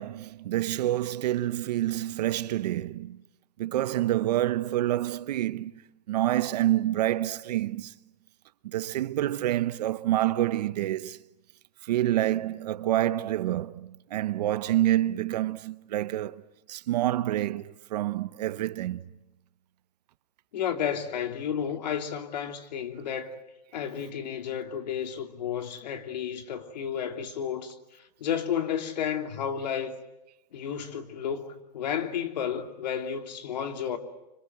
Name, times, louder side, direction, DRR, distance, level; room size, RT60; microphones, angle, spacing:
voice 1, 0.0-3.2 3.6-5.7 6.1-7.9 8.6-11.2 11.8-16.4 16.7-19.0, right 14 dB, 75° right, 1.0 m, -27 dB
voice 2, 20.5-23.4 23.7-30.0 30.5-34.0, left 8 dB, 90° left, 3.0 m, -32 dB
26.0 x 25.5 x 8.0 m
supercardioid pair, 165°, 21 cm